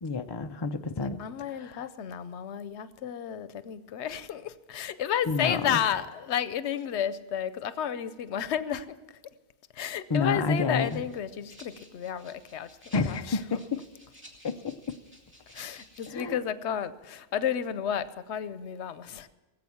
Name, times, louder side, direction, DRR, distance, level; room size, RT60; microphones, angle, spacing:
voice 1, 0.0-1.2 1.6-1.9 5.3-5.8 10.1-11.0 12.9-13.8 14.4-15.0 16.1-16.4, left 4 dB, 30° left, 8 dB, 0.5 m, -29 dB
voice 2, 1.0-9.2 9.7-13.6 15.5-19.3, left 9 dB, 90° left, 14 dB, 1.0 m, -32 dB
Rattle (instrument), 10.8-16.3, equal, 10° right, 2.2 m, -55 dB
18.5 x 8.1 x 7.1 m, 1.2 s
omnidirectional pair, 1.1 m